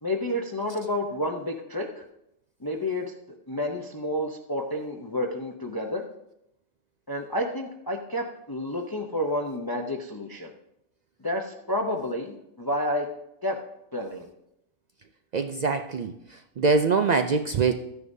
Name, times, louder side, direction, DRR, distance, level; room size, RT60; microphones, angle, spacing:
voice 1, 0.0-2.0 2.6-3.1 3.5-6.0 7.1-10.5 11.2-13.1 13.4-13.6 13.9-14.3, left 1 dB, 20° left, 1 dB, 0.6 m, -30 dB
voice 2, 15.3-17.7, right 4 dB, 75° right, 7 dB, 0.4 m, -24 dB
13.5 x 9.6 x 2.7 m, 0.81 s
omnidirectional pair, 1.3 m